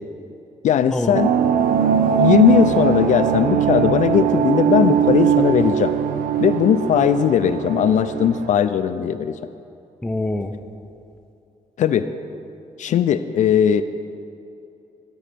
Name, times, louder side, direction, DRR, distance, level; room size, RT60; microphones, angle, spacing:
voice 1, 0.6-1.3 2.2-5.9 6.4-9.4 11.8-12.1 12.8-13.8, left 9 dB, 65° left, 11 dB, 0.4 m, -18 dB
sound 1, 1.1-8.5, right 8 dB, 85° right, 0.5 m, -20 dB
voice 2, 10.0-10.6, left 2 dB, 5° left, 6 dB, 0.5 m, -25 dB
13.0 x 4.3 x 6.7 m, 2.7 s
cardioid pair, 115°, 14 cm